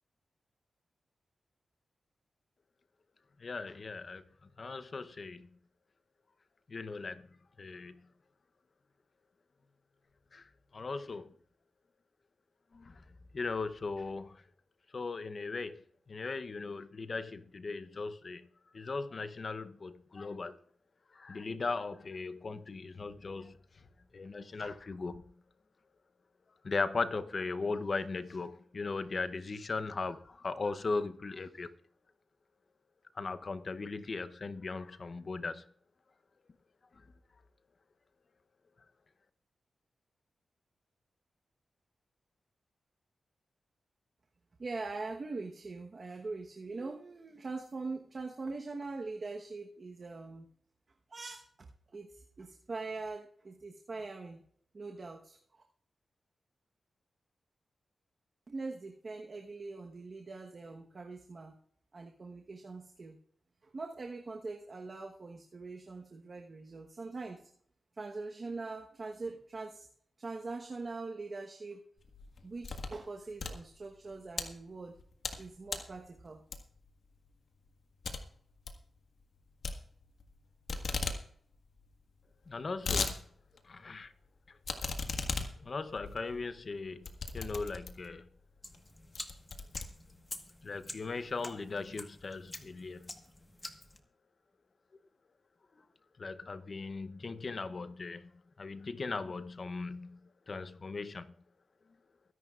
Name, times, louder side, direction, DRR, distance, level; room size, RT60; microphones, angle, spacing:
voice 1, 3.4-4.2 4.6-5.5 6.7-7.2 7.6-8.0 10.3-11.3 12.7-13.0 13.3-14.4 14.9-15.8 16.1-18.5 18.7-20.6 21.1-23.6 24.1-25.2 26.6-31.7 33.2-35.6 82.5-83.1 83.6-84.1 85.6-87.1 87.3-88.3 90.6-93.1 96.2-98.3 98.6-100.2 100.5-101.3, left 4 dB, 45° left, 0.8 m, -38 dB
voice 2, 44.6-50.5 51.1-51.7 51.9-54.4 54.7-55.4 58.5-61.5 61.9-63.2 63.6-67.4 67.9-69.9 70.2-71.8 72.4-75.0 75.4-76.4, right 3 dB, 45° right, 1.2 m, -42 dB
sound 1, 72.0-73.0 73.3-74.5 75.0-75.4 75.7-76.0 76.5-76.9 77.3-77.4 77.7-77.8 78.0-78.2 78.5-78.8 79.6-80.4 80.7-81.2 81.5-81.6 81.8-81.9 82.4-83.2 83.6-83.7 84.6-88.2 88.7-88.8 89.2-90.4, left 4 dB, 70° left, 1.6 m, -37 dB
sound 2, 88.6-94.0, left 2 dB, 20° left, 1.4 m, -48 dB
22.5 x 11.0 x 2.5 m
wide cardioid pair, 90°, 0 cm